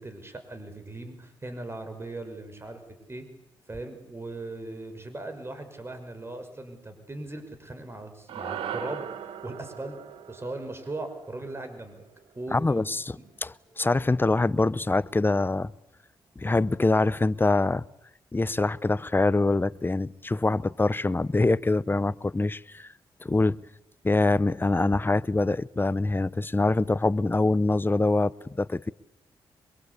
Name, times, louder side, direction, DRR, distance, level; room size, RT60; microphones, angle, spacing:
voice 1, 0.0-2.8 3.1-3.3 3.7-9.1 9.4-10.0 10.3-12.0 12.4-13.3, right 2 dB, 25° right, 5.8 m, -39 dB
sound 1, 8.3-12.7, right 9 dB, 85° right, 1.6 m, -39 dB
voice 2, 12.5-13.2 13.4-15.7 16.4-17.8 18.3-22.9 23.2-23.6 24.0-28.9, left 2 dB, 25° left, 0.9 m, -24 dB
25.0 x 22.5 x 8.4 m
supercardioid pair, 55°, 9 cm